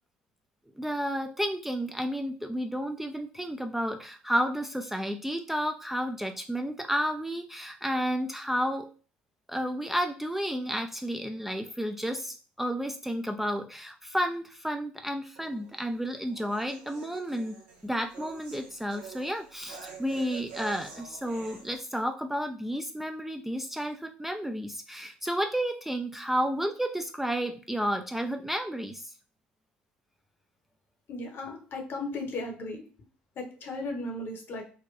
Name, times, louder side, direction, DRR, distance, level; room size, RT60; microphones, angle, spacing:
voice 1, 0.8-8.9 9.5-17.6 17.8-29.1, equal, 5° right, 5 dB, 0.4 m, -31 dB
sound 1, 15.4-21.8, right 5 dB, 75° right, 0.6 m, -47 dB
voice 2, 31.1-32.8 33.4-34.7, left 2 dB, 50° left, 3 dB, 0.9 m, -36 dB
4.1 x 2.2 x 2.4 m, 0.38 s
figure-of-eight pair, 55°, 5 cm